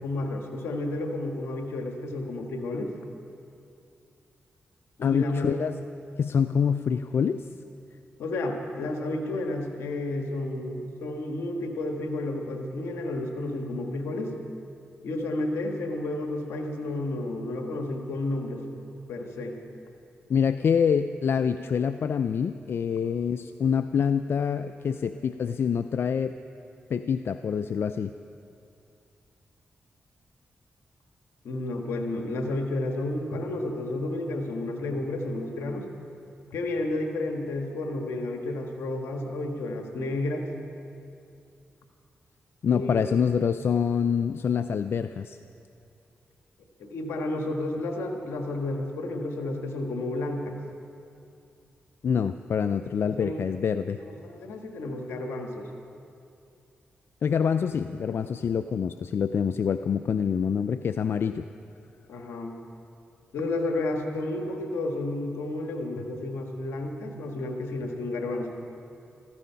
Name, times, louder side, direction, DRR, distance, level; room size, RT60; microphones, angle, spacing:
voice 1, 0.0-2.9 5.0-5.6 8.2-14.4 15.0-18.6 19.1-19.6 31.4-35.9 36.5-40.5 42.6-43.0 46.8-50.5 53.0-53.4 54.0-55.7 62.1-62.6 63.3-68.5, left 2 dB, 85° left, 4 dB, 1.4 m, -31 dB
voice 2, 5.0-5.7 6.2-7.5 20.3-26.4 26.9-28.1 42.6-45.4 52.0-54.0 57.2-61.5, left 7 dB, 65° left, 11 dB, 0.4 m, -26 dB
15.0 x 14.5 x 5.7 m, 2.6 s
supercardioid pair, 50°, 4 cm